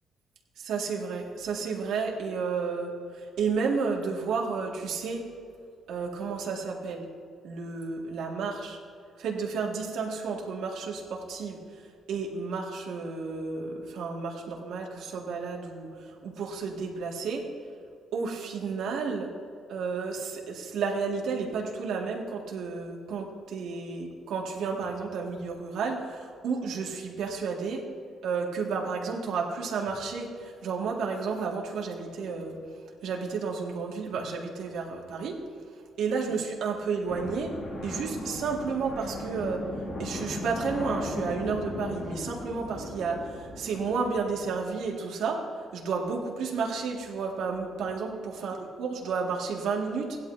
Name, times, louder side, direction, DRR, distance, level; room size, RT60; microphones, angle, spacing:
voice 1, 0.6-5.3 5.9-7.1 7.4-8.8 9.2-11.6 12.1-15.9 16.2-17.4 18.1-19.3 19.7-27.8 28.2-32.6 33.0-35.4 36.0-37.5 37.8-39.6 40.0-45.4 45.7-50.2, right 5 dB, 80° right, 0 dB, 1.9 m, -32 dB
sound 1, 37.1-44.5, left 2 dB, 50° left, 2.2 m, -37 dB
16.5 x 11.5 x 2.7 m, 2.3 s
cardioid pair, 90°, 0 cm